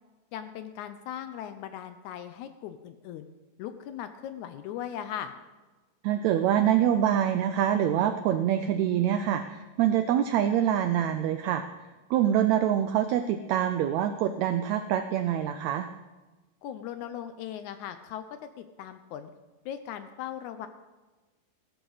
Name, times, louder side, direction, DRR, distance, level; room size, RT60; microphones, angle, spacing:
voice 1, 0.3-3.3 3.6-5.3 16.6-18.2 18.6-19.3 19.7-20.7, left 10 dB, 75° left, 10 dB, 1.8 m, -38 dB
voice 2, 6.0-11.6 12.1-15.9, right 10 dB, 85° right, 9 dB, 1.6 m, -25 dB
16.0 x 13.0 x 4.0 m, 1.2 s
omnidirectional pair, 3.8 m